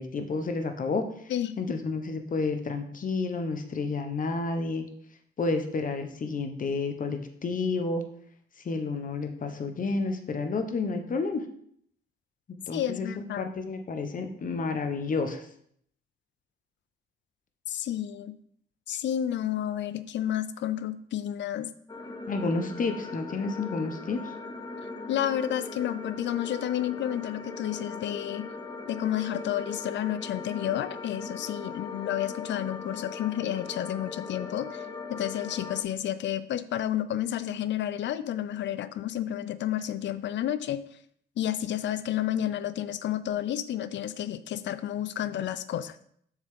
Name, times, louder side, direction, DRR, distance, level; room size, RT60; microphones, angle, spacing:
voice 1, 0.0-4.9 5.4-8.0 8.6-11.4 12.7-13.1 13.4-15.5 22.3-24.3, left 3 dB, 45° left, 7 dB, 1.2 m, -30 dB
voice 2, 1.3-1.8 12.7-13.4 17.7-18.4 18.9-21.7 25.1-28.5 28.9-40.8 41.4-46.1, left 11 dB, 65° left, 14 dB, 0.6 m, -31 dB
sound 1, 21.9-35.8, left 4 dB, 20° left, 0.9 m, -39 dB
7.3 x 6.2 x 3.8 m, 0.66 s
cardioid pair, 90°, 20 cm